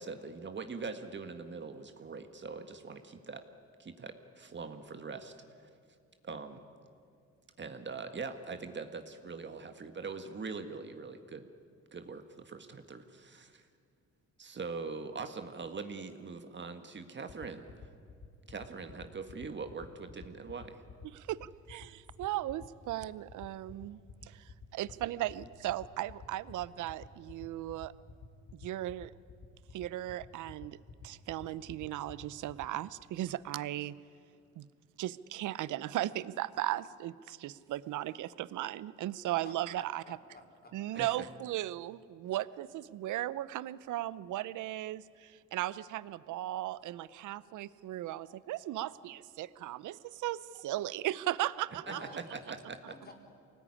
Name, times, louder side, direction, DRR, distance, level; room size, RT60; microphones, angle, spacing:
voice 1, 0.0-3.5 3.8-5.3 6.2-6.6 7.6-11.4 11.9-13.6 14.4-17.8 18.5-20.8 40.9-41.1 51.9-52.9, right 4 dB, 35° right, 7 dB, 1.7 m, -42 dB
sound 1, 17.3-32.7, left 5 dB, 60° left, 2.5 m, -49 dB
voice 2, 21.1-27.9 28.5-29.1 29.7-30.8 31.0-33.9 34.6-34.7 35.0-40.0 40.7-52.0, right 14 dB, 80° right, 18 dB, 0.7 m, -37 dB
voice 3, 39.4-41.0 51.8-52.4 52.9-53.1, left 2 dB, 30° left, 3 dB, 4.3 m, -52 dB
24.5 x 19.0 x 10.0 m, 2.3 s
cardioid pair, 90°, 30 cm